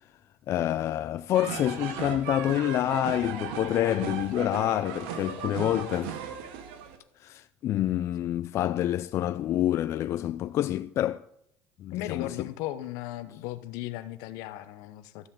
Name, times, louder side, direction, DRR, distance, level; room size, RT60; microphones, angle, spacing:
voice 1, 0.5-6.2 7.2-11.2 11.8-12.5, left 12 dB, 50° left, 0.4 m, -27 dB
sound 1, 1.3-7.0, right 7 dB, 85° right, 1.7 m, -36 dB
voice 2, 11.9-15.3, left 14 dB, 75° left, 0.9 m, -36 dB
13.0 x 5.6 x 8.7 m
cardioid pair, 120°, 6 cm